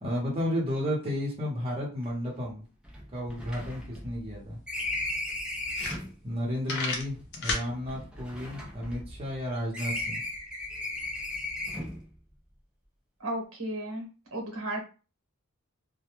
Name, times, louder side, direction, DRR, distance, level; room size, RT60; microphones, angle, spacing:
voice 1, 0.0-2.6 3.1-4.6 6.2-10.2, left 1 dB, 30° right, -4 dB, 0.8 m, -32 dB
sound 1, 2.0-2.1 2.4-2.5 2.8-6.1 7.0-9.4 9.7-12.1, left 1 dB, 5° right, 0.5 m, -36 dB
sound 2, 4.3-4.4 4.7-4.8 5.3-5.4 5.7-6.4 6.6-7.7, left 3 dB, 50° left, 0.6 m, -31 dB
voice 2, 13.2-14.8, right 1 dB, 80° right, 0 dB, 0.9 m, -34 dB
2.2 x 2.2 x 2.9 m, 0.34 s
head